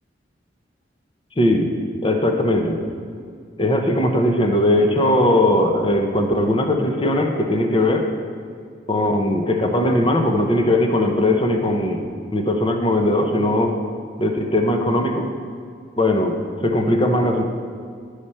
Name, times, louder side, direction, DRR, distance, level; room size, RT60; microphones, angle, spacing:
voice 1, 1.4-1.7 2.0-2.8 3.6-8.1 8.9-12.0 12.3-13.8 14.2-15.3 16.0-16.4 16.6-17.4, left 1 dB, 25° left, 4 dB, 0.7 m, -19 dB
11.0 x 4.9 x 4.2 m, 2.2 s
head